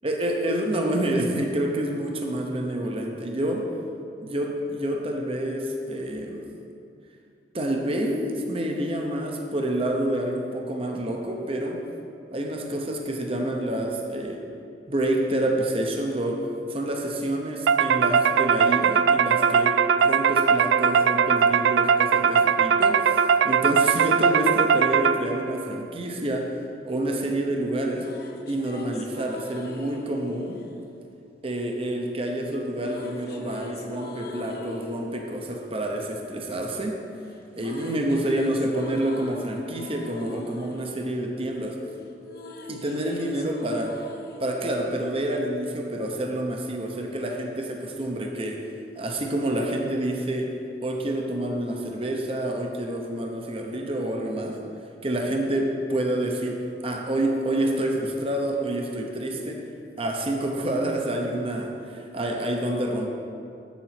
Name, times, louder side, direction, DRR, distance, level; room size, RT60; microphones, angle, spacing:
voice 1, 0.0-3.7 4.2-6.4 7.5-11.8 12.3-14.4 14.9-26.6 26.8-28.1 28.5-30.6 31.4-37.0 37.5-41.8 42.7-44.0 44.4-48.6 49.0-50.5 50.8-54.6 55.0-59.7 60.0-63.1, right 1 dB, 30° right, 1 dB, 0.9 m, -28 dB
sound 1, 17.7-25.5, right 6 dB, 85° right, 0.3 m, -20 dB
sound 2, 27.7-31.9 32.7-37.0 37.2-45.7, left 2 dB, 60° left, 0.9 m, -42 dB
8.3 x 7.2 x 5.9 m, 2.5 s
head